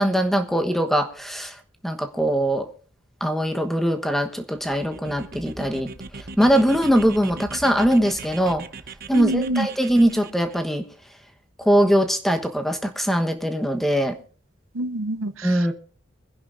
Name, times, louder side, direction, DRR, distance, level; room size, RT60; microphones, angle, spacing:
voice 1, 0.0-1.6 1.8-2.7 3.2-5.9 6.2-8.6 9.1-10.8 11.6-14.2 15.4-15.7, equal, ahead, 1.1 m, -21 dB
sound 1, 4.5-10.6, right 3 dB, 50° right, 0.9 m, -39 dB
voice 2, 9.1-9.7 14.7-15.7, right 2 dB, 90° right, 0.8 m, -26 dB
24.0 x 10.5 x 2.6 m
head